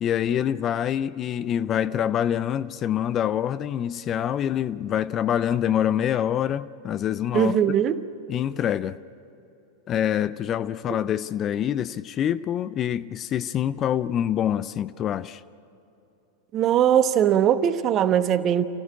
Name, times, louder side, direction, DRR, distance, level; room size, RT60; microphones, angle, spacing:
voice 1, 0.0-7.6 8.3-9.0 9.9-15.4, left 10 dB, 30° left, 0.5 m, -25 dB
voice 2, 7.3-8.0 10.9-11.0 16.5-18.6, right 9 dB, 30° right, 1.1 m, -20 dB
29.0 x 15.5 x 10.0 m
figure-of-eight pair, 90°, 0 cm